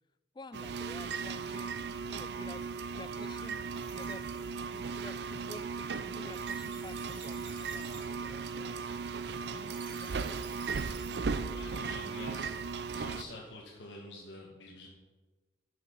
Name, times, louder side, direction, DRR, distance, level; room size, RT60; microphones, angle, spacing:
voice 1, 0.3-1.8 2.1-2.7 3.0-3.6 3.9-4.3 4.7-9.2 9.5-10.5, left 3 dB, 25° left, 14 dB, 0.3 m, -50 dB
sound 1, 0.5-13.2, right 5 dB, 65° right, 0.5 m, -37 dB
sound 2, 3.3-11.4, right 5 dB, 80° right, 1.7 m, -53 dB
voice 2, 11.5-12.6 12.9-14.9, left 2 dB, 85° left, -1 dB, 1.2 m, -47 dB
11.0 x 6.5 x 5.4 m, 1.3 s
head